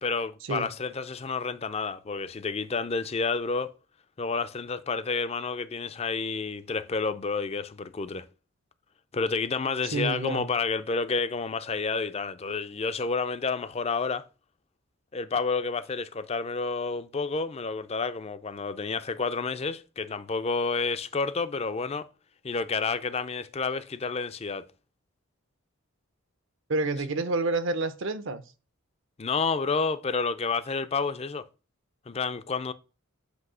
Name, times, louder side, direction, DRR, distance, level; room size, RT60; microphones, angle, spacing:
voice 1, 0.0-3.7 4.2-8.2 9.1-14.2 15.1-22.1 22.4-24.7 29.2-31.5 32.1-32.7, left 4 dB, 30° left, 0.4 m, -30 dB
voice 2, 9.9-10.5 26.7-28.4, right 2 dB, 60° right, 0.7 m, -28 dB
8.2 x 2.8 x 6.2 m
head